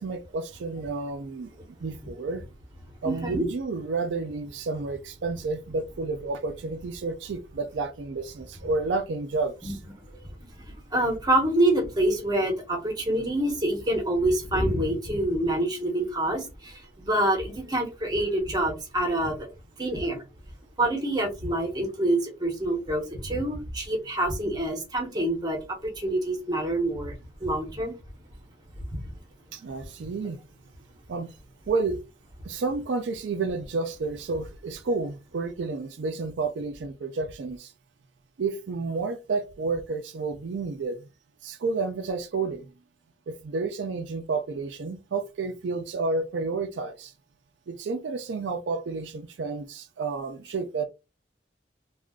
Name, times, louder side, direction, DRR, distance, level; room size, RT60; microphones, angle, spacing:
voice 1, 0.0-1.5 1.8-2.4 3.0-9.8 29.5-30.4 31.1-31.3 31.7-32.0 32.4-37.7 38.4-41.1 41.4-42.7 43.3-47.1 47.7-50.8, right 3 dB, 90° right, 0.4 m, -30 dB
voice 2, 3.0-3.4 9.6-9.8 10.1-10.3 10.6-10.7 10.9-19.5 19.8-20.2 20.8-27.1 27.4-28.0 28.9-29.0, right 1 dB, 25° right, 1.0 m, -26 dB
2.4 x 2.3 x 3.6 m
head